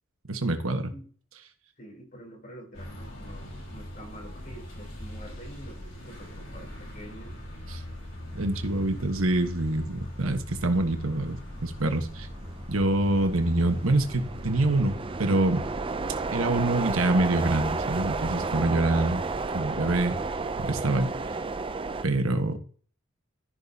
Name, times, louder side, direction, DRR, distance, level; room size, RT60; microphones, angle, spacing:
voice 1, 0.3-0.9 7.7-7.8 8.3-12.3 12.7-15.6 16.3-19.2 19.5-20.2 20.6-21.1 22.0-22.6, right 2 dB, 80° right, 1.4 m, -26 dB
voice 2, 1.8-7.4, equal, 45° left, 5.1 m, -46 dB
sound 1, 2.7-21.1, equal, 65° left, 4.8 m, -41 dB
sound 2, 7.1-7.3 7.7-22.1, right 4 dB, 25° right, 0.5 m, -33 dB
14.0 x 6.3 x 2.9 m
head